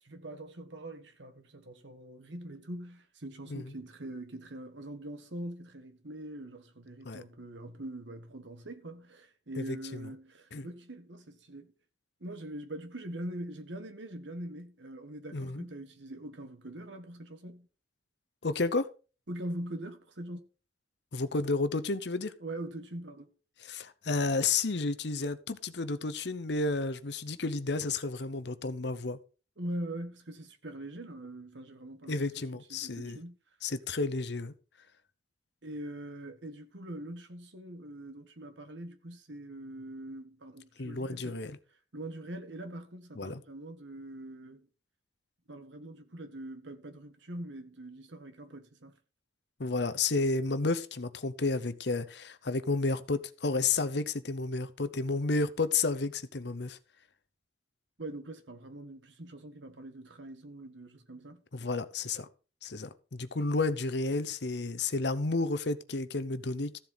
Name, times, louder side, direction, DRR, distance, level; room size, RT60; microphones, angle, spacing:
voice 1, 0.0-11.7 12.2-17.7 19.3-20.4 22.4-23.3 29.6-32.4 32.7-33.4 35.6-41.4 41.9-44.7 45.5-49.0 58.0-61.4, right 1 dB, 75° right, 1.5 m, -43 dB
voice 2, 15.3-15.7 18.4-18.9 21.1-22.3 23.6-29.2 32.1-33.2 33.6-34.5 40.8-41.6 43.2-43.4 49.6-56.8 61.5-62.3 62.6-66.8, left 3 dB, 65° left, 0.9 m, -31 dB
14.5 x 7.5 x 4.1 m
head